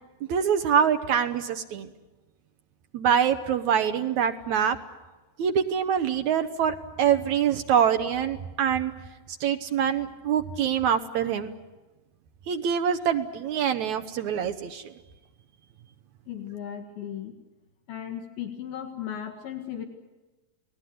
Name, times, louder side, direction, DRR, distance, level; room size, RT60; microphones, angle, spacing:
voice 1, 0.3-1.9 2.9-4.8 5.4-8.9 9.4-11.5 12.5-14.8, right 8 dB, 70° right, 8 dB, 1.8 m, -25 dB
voice 2, 16.3-17.3 17.9-19.9, left 9 dB, 70° left, 3 dB, 3.5 m, -36 dB
29.5 x 19.0 x 9.4 m, 1.2 s
omnidirectional pair, 4.5 m